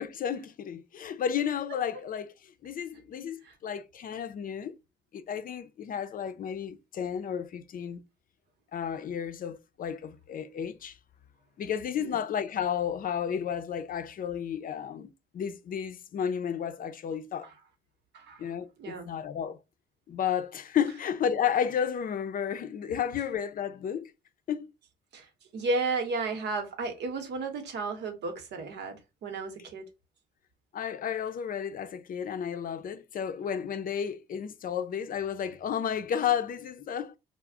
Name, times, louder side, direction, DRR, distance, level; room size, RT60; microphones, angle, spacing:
voice 1, 0.0-2.3 2.6-4.7 5.1-8.0 8.7-10.9 11.6-17.5 18.4-19.6 20.1-24.1 24.5-24.7 30.7-37.2, left 8 dB, 50° left, 0.4 m, -32 dB
voice 2, 25.5-29.8, right 3 dB, 75° right, 0.9 m, -33 dB
2.3 x 2.0 x 3.5 m
supercardioid pair, 60°, 18 cm